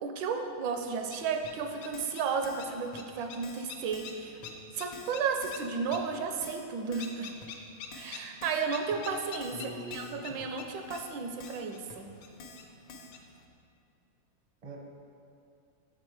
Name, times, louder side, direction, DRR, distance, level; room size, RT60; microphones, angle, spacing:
voice 1, 0.0-4.4 4.7-7.3 7.9-9.5 9.9-12.1, right 5 dB, 75° right, 5 dB, 1.2 m, -33 dB
sound 1, 0.8-13.4, left 5 dB, 70° left, 1.1 m, -48 dB
Keyboard (musical), 1.4-1.5 1.9-2.2 2.4-2.7 2.9-3.0 3.4-3.7 3.9-4.2 4.4-4.5 4.9-5.2 5.4-5.7 5.9-6.0 6.4-6.7 6.9-7.1 7.4-7.5 7.9-8.1 8.4-8.7 8.9-9.0 9.4-9.6 9.9-10.1 10.4-10.5 10.9-11.1 11.4-11.6 11.9-12.0 12.4-12.6 12.9-13.1, left 3 dB, 85° left, 1.5 m, -48 dB
voice 2, 9.5-10.4 14.6-14.8, right 1 dB, 40° right, 0 dB, 0.5 m, -43 dB
7.7 x 5.2 x 4.5 m, 2.6 s
omnidirectional pair, 2.1 m